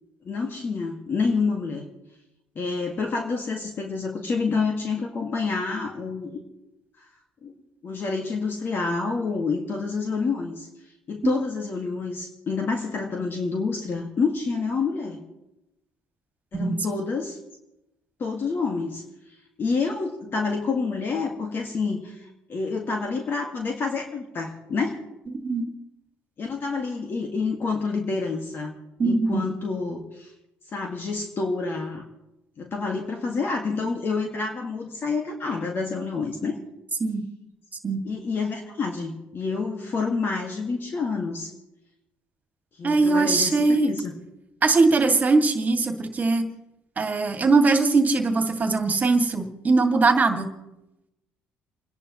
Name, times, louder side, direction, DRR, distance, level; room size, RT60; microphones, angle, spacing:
voice 1, 0.3-1.9 2.6-6.4 7.4-7.5 7.8-10.7 11.1-15.2 16.5-17.4 18.2-19.0 19.6-25.0 26.4-28.7 29.0-30.3 30.7-32.0 32.6-36.6 38.1-41.5 42.8-44.1, left 4 dB, 45° left, 2 dB, 2.0 m, -28 dB
voice 2, 16.5-16.9 25.3-25.7 29.0-29.5 37.0-37.2 37.8-38.0 42.8-43.9 44.6-46.4 47.0-50.5, right 3 dB, 30° right, 5 dB, 2.2 m, -21 dB
30.0 x 10.5 x 3.1 m, 0.92 s
supercardioid pair, 80°, 5 cm